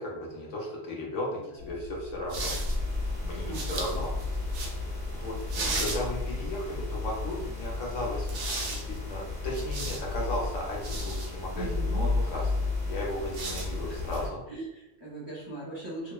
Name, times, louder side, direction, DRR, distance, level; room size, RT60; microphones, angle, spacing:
voice 1, 0.0-2.6 3.2-4.1 4.5-8.3 8.7-14.4, left 1 dB, 70° left, -3 dB, 1.0 m, -36 dB
sound 1, 1.6-6.6 8.1-11.3 13.1-14.3, right 1 dB, 90° right, 1.0 m, -37 dB
sound 2, 2.3-14.3, left 3 dB, 45° right, 0.9 m, -33 dB
voice 2, 3.5-4.0 5.6-6.0 11.5-12.1 13.8-13.9 14.5-16.1, right 2 dB, 30° right, -8 dB, 0.6 m, -40 dB
2.8 x 2.0 x 2.3 m, 0.91 s
omnidirectional pair, 1.4 m